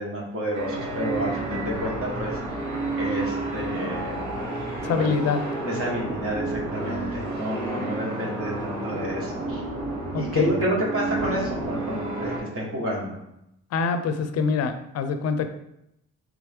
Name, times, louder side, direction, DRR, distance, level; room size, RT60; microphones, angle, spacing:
voice 1, 0.0-4.2 5.0-5.1 5.6-9.6 10.1-13.2, equal, 50° right, -4 dB, 1.4 m, -30 dB
sound 1, 0.5-12.4, right 2 dB, 65° right, 1.3 m, -30 dB
voice 2, 4.8-5.4 10.1-10.5 13.7-15.5, left 5 dB, 55° left, 8 dB, 0.5 m, -24 dB
3.5 x 3.0 x 3.5 m, 0.81 s
cardioid pair, 90°, 30 cm